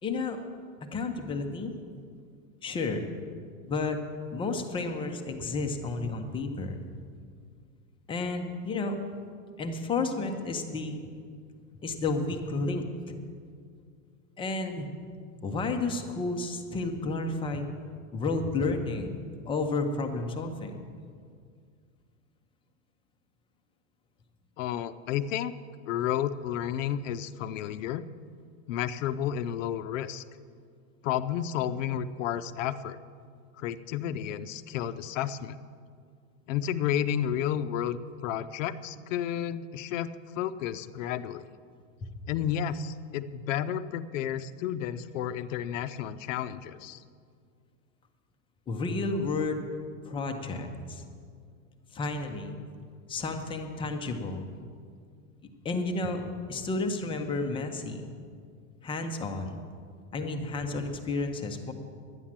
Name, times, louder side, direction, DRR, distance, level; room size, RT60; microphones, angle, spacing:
voice 1, 0.0-0.4 0.9-1.7 2.6-3.1 3.6-4.0 4.3-6.8 8.1-9.0 9.6-11.0 11.8-13.2 14.4-14.9 15.4-17.7 18.1-19.1 19.5-20.8 42.0-42.1 48.7-49.7 50.1-51.0 51.9-52.6 53.1-54.5 55.6-56.2 56.5-58.1 58.8-59.6 60.1-61.7, left 3 dB, 15° left, 5 dB, 0.6 m, -31 dB
voice 2, 24.6-25.5 25.9-28.0 28.7-30.2 31.0-33.0 33.6-35.6 36.5-40.1 40.4-41.4 42.3-47.0, left 10 dB, 65° left, 12 dB, 0.7 m, -31 dB
11.5 x 9.7 x 7.4 m, 2.2 s
supercardioid pair, 165°, 41 cm